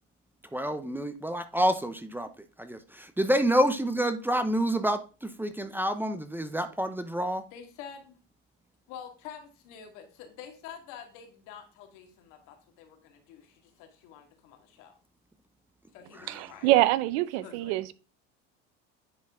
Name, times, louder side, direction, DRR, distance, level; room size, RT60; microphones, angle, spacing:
voice 1, 0.5-2.3 2.6-7.4 16.2-16.4, equal, 5° right, 0.6 m, -28 dB
voice 2, 7.5-8.2 8.9-14.9 15.9-16.7 17.3-17.8, left 8 dB, 70° left, 2.1 m, -47 dB
voice 3, 16.3-17.9, right 16 dB, 80° right, 0.7 m, -25 dB
10.0 x 4.4 x 3.6 m
supercardioid pair, 110°, 32 cm